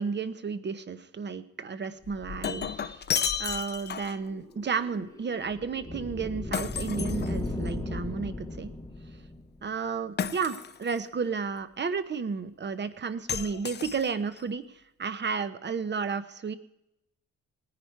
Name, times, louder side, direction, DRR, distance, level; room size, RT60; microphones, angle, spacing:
voice 1, 0.0-3.1 3.4-8.7 9.6-16.5, right 5 dB, 35° right, 12 dB, 0.9 m, -32 dB
Shatter, 2.0-4.3 6.5-7.8 10.2-11.0 13.3-14.4, left 7 dB, 35° left, 0.5 m, -33 dB
sound 1, 4.2-9.6, left 2 dB, 10° left, 0.9 m, -36 dB
18.5 x 9.9 x 4.7 m, 0.85 s
cardioid pair, 115°, 31 cm